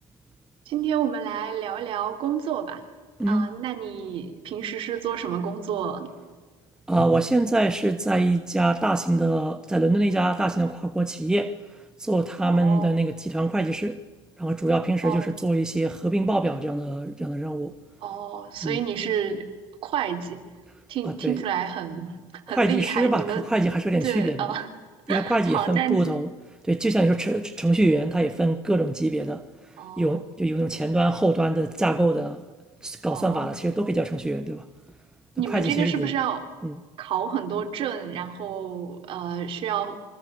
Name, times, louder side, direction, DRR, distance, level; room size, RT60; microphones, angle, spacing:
voice 1, 0.7-2.8 3.3-6.1 12.4-12.9 15.0-15.3 18.0-19.4 19.8-20.4 20.9-23.5 24.0-24.7 25.1-26.1 29.8-30.2 33.1-33.5 35.4-36.5 37.0-40.0, right 9 dB, 45° right, 3.6 m, -29 dB
voice 2, 3.2-3.5 6.9-11.6 12.0-14.0 14.4-17.7 18.6-18.8 21.0-21.4 22.5-24.5 25.1-26.3 26.6-29.5 30.0-32.4 32.8-34.6 35.5-36.1 36.6-36.7, right 2 dB, 5° right, 1.0 m, -24 dB
28.0 x 25.0 x 7.9 m
cardioid pair, 140°, 13 cm